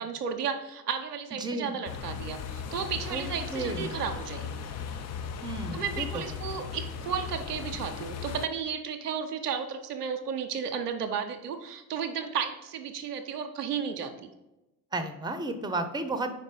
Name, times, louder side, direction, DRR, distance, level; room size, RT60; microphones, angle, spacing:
voice 1, 0.0-4.6 5.7-14.3, right 7 dB, 90° right, 5 dB, 0.6 m, -33 dB
voice 2, 1.3-1.7 3.1-3.3 3.5-4.0 5.4-6.4 14.9-16.3, right 2 dB, 10° right, 9 dB, 0.7 m, -33 dB
sound 1, 1.8-8.5, left 7 dB, 35° left, 0.6 m, -37 dB
5.2 x 4.3 x 5.0 m, 0.98 s
figure-of-eight pair, 50°, 45 cm